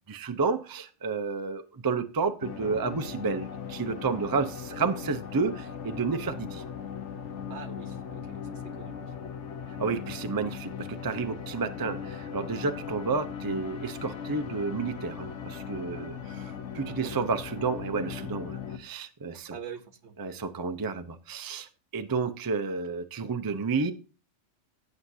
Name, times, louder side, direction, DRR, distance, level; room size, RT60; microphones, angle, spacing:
voice 1, 0.1-6.6 9.8-19.5 20.2-21.7 21.9-23.9, right 4 dB, 25° right, 0.5 m, -31 dB
sound 1, 2.4-18.8, left 7 dB, 70° left, 1.2 m, -39 dB
voice 2, 7.5-9.1 16.9-17.1 19.5-20.2, right 7 dB, 70° right, 1.3 m, -44 dB
16.0 x 6.4 x 2.7 m
omnidirectional pair, 1.2 m